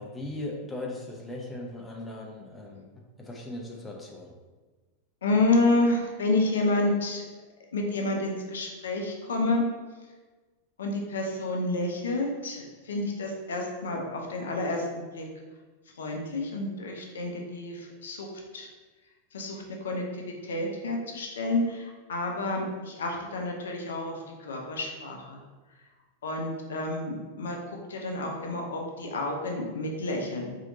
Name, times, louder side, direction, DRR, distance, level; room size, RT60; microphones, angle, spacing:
voice 1, 0.0-2.9 3.2-4.3, left 2 dB, 10° left, -1 dB, 0.6 m, -38 dB
voice 2, 5.2-7.2 7.7-9.6 10.8-15.3 16.0-18.3 18.5-18.7 19.3-20.0 20.4-25.4 26.2-30.6, left 2 dB, 65° left, 1 dB, 0.5 m, -29 dB
4.1 x 2.8 x 2.7 m, 1.3 s
figure-of-eight pair, 90°, 0 cm